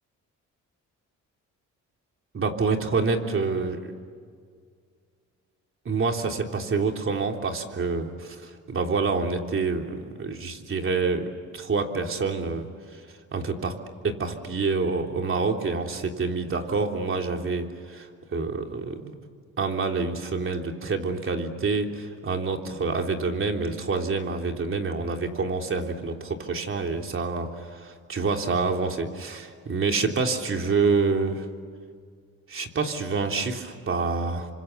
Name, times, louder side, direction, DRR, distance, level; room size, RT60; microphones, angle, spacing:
voice 1, 2.3-3.9 5.9-13.0 13.3-13.7 14.0-19.2 19.6-31.5 32.5-34.5, right 4 dB, 45° right, 3 dB, 3.5 m, -27 dB
29.0 x 25.5 x 7.0 m, 2.1 s
cardioid pair, 90°, 30 cm